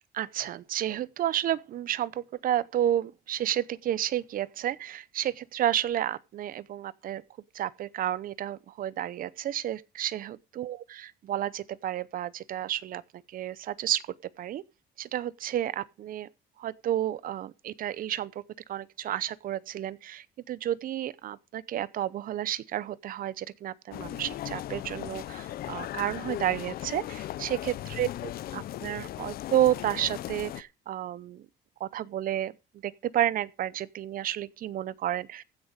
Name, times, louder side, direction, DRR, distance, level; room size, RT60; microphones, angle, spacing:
voice 1, 0.1-7.2 7.5-10.8 11.3-13.0 13.3-14.0 14.4-14.6 15.0-16.3 16.6-18.4 18.7-28.1 28.5-31.4 31.8-32.5 32.8-35.4, right 12 dB, 55° right, 0.7 m, -31 dB
sound 1, 23.9-30.6, left 13 dB, 65° left, 0.7 m, -37 dB
15.5 x 6.5 x 5.2 m
cardioid pair, 110°, 17 cm